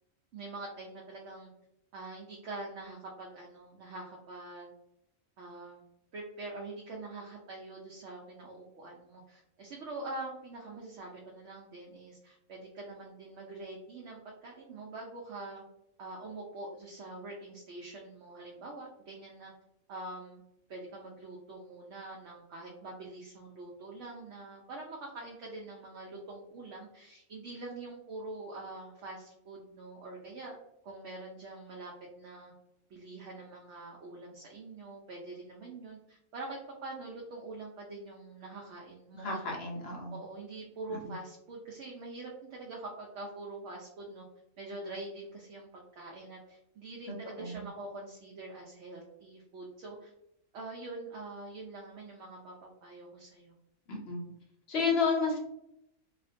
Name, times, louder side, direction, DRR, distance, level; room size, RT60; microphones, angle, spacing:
voice 1, 0.3-1.5 1.9-4.7 5.4-5.8 6.1-15.6 16.0-19.5 19.9-20.4 20.7-30.6 30.8-32.5 32.9-39.4 40.1-44.2 44.6-50.1 50.5-53.6, right 2 dB, 70° right, -2 dB, 0.8 m, -44 dB
voice 2, 39.1-40.2 40.9-41.1 47.4-47.7 53.9-54.3 54.7-55.4, left 4 dB, 60° left, 0 dB, 0.8 m, -31 dB
2.4 x 2.1 x 2.4 m, 0.81 s
omnidirectional pair, 1.4 m